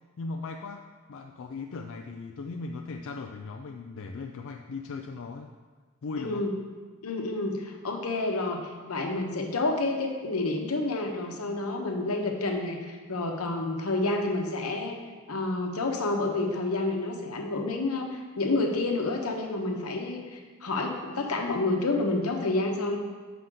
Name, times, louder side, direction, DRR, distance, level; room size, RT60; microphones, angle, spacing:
voice 1, 0.2-5.5 6.0-6.5, left 4 dB, 65° left, 4 dB, 0.4 m, -38 dB
voice 2, 6.2-6.5 7.0-15.0 15.3-23.0, left 2 dB, 85° left, 2 dB, 1.0 m, -29 dB
7.7 x 5.7 x 3.8 m, 1.4 s
head